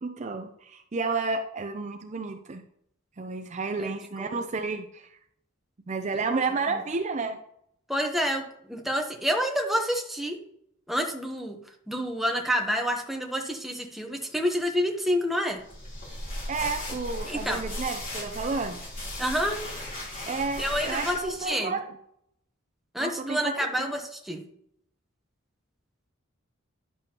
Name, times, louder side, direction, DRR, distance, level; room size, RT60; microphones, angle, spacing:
voice 1, 0.0-2.6 3.2-5.1 5.9-7.4 16.5-18.8 20.3-21.9 23.0-24.0, right 4 dB, 35° right, 6 dB, 0.5 m, -31 dB
voice 2, 7.9-10.4 10.9-11.6 11.9-15.6 17.3-17.6 19.2-19.7 20.6-21.7 22.9-24.4, equal, ahead, 3 dB, 0.9 m, -28 dB
sound 1, 15.6-21.5, left 1 dB, 40° left, 3.2 m, -36 dB
10.5 x 6.9 x 2.9 m, 0.71 s
head